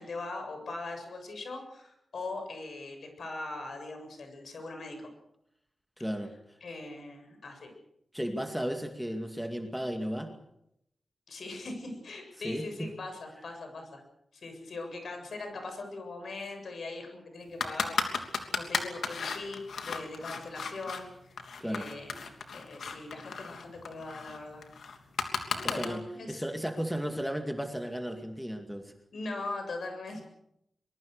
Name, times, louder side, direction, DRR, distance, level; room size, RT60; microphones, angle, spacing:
voice 1, 0.0-5.1 6.6-7.7 11.3-14.0 14.3-24.7 25.5-26.4 29.1-30.2, left 2 dB, 65° left, 5 dB, 7.4 m, -41 dB
voice 2, 6.0-6.3 8.1-10.3 12.4-12.9 21.6-21.9 25.6-28.9, equal, ahead, 5 dB, 2.3 m, -34 dB
sound 1, 17.6-21.0 21.4-25.9, left 5 dB, 90° left, 3.0 m, -34 dB
23.5 x 23.0 x 6.7 m, 0.78 s
wide cardioid pair, 115°, 0 cm